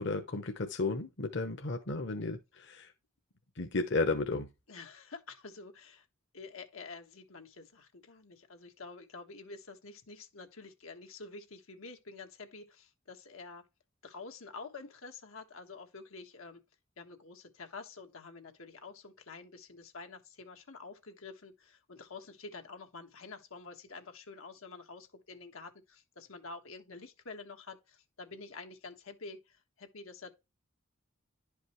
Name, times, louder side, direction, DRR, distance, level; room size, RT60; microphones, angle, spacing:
voice 1, 0.0-2.9 3.6-4.5, left 3 dB, 60° left, 1.0 m, -33 dB
voice 2, 4.7-6.1 6.3-13.6 14.0-16.6 17.0-30.3, left 4 dB, 90° left, 1.5 m, -48 dB
11.0 x 5.2 x 3.1 m
head